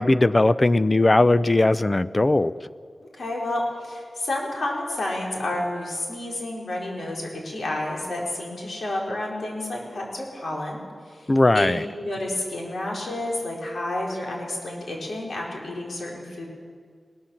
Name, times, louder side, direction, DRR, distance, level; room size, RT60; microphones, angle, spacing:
voice 1, 0.0-2.5 11.3-11.8, left 2 dB, 25° left, 15 dB, 0.5 m, -19 dB
voice 2, 3.0-10.8 11.1-11.3 11.5-16.5, left 1 dB, 75° left, -2 dB, 4.7 m, -30 dB
20.5 x 18.5 x 7.2 m, 2.1 s
wide cardioid pair, 110°, 0 cm